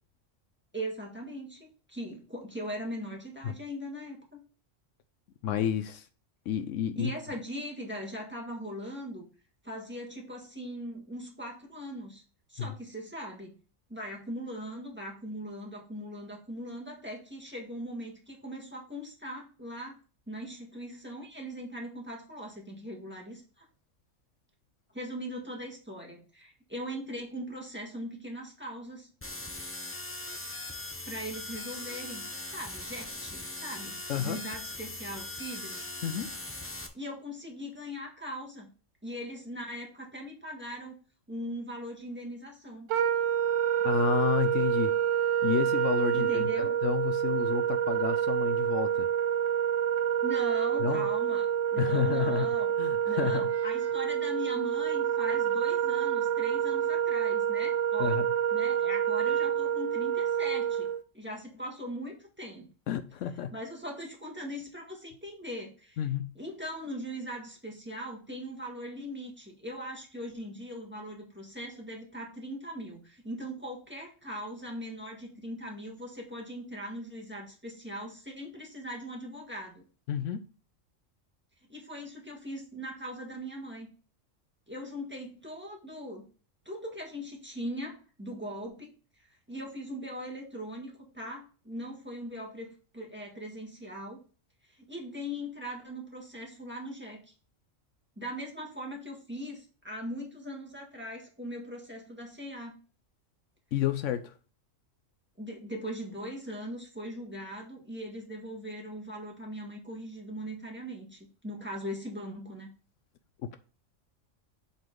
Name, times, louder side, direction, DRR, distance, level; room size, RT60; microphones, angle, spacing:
voice 1, 0.7-4.4 6.9-9.3 9.6-12.2 12.5-13.6 13.9-20.0 20.3-23.6 24.9-29.1 31.1-35.8 36.9-38.7 39.0-40.9 41.3-42.9 46.1-46.7 50.2-52.7 53.0-58.2 58.5-60.9 61.1-62.7 63.5-66.0 66.3-79.8 81.7-83.9 84.7-86.3 86.6-88.9 89.5-94.2 94.7-97.3 98.2-102.8 105.4-112.7, equal, 10° right, 1.6 m, -40 dB
voice 2, 5.4-6.1 6.5-7.1 12.6-12.7 34.1-34.4 36.0-36.3 43.8-44.9 45.4-49.1 50.8-51.1 51.8-52.5 52.8-53.5 58.0-58.3 62.9-63.5 66.0-66.3 80.1-80.4 103.7-104.3 113.4-113.6, left 9 dB, 75° left, 0.9 m, -30 dB
sound 1, 29.2-36.9, left 2 dB, 15° left, 0.5 m, -40 dB
Wind instrument woodwind instrument, 42.9-61.0, right 9 dB, 75° right, 1.0 m, -28 dB
7.6 x 4.2 x 3.8 m
omnidirectional pair, 1.3 m